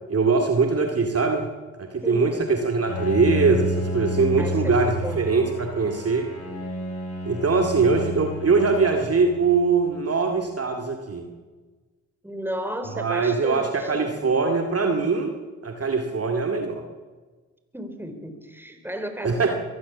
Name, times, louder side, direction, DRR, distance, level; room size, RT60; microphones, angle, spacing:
voice 1, 0.1-1.5 1.8-6.3 7.3-11.2 13.0-15.4 15.6-16.8 19.2-19.5, right 4 dB, 35° right, 4 dB, 2.3 m, -22 dB
voice 2, 2.0-2.6 4.4-5.3 12.2-14.1 17.7-19.5, equal, 5° right, 7 dB, 4.2 m, -34 dB
Bowed string instrument, 2.9-10.0, left 1 dB, 35° left, 7.3 m, -30 dB
23.0 x 15.5 x 7.3 m, 1.4 s
hypercardioid pair, 45°, 40 cm